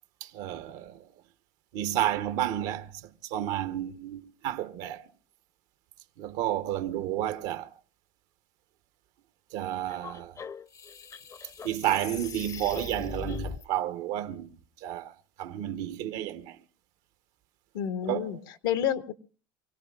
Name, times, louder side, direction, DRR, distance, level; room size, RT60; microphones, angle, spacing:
voice 1, 0.2-1.1 1.7-5.1 6.2-7.7 9.5-10.4 11.6-16.6 18.1-18.3, right 12 dB, 75° right, 1.0 m, -31 dB
sound 1, 9.9-13.6, left 5 dB, 30° left, 0.6 m, -40 dB
voice 2, 17.7-19.1, left 10 dB, 90° left, 1.4 m, -30 dB
28.5 x 17.5 x 2.3 m
supercardioid pair, 90°, 11 cm